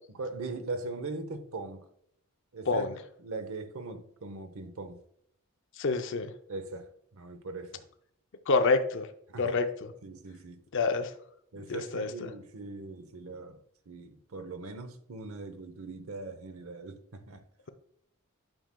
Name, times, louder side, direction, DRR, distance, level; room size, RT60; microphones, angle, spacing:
voice 1, 0.1-1.9 2.5-5.0 6.5-7.8 9.3-9.6 10.0-10.6 11.5-13.6 13.9-17.4, right 3 dB, 70° right, 0.8 m, -40 dB
voice 2, 5.8-6.3 8.5-9.1 9.4-9.9 10.7-11.1 11.7-12.1, left 3 dB, 60° left, 0.5 m, -27 dB
8.9 x 6.2 x 2.2 m
head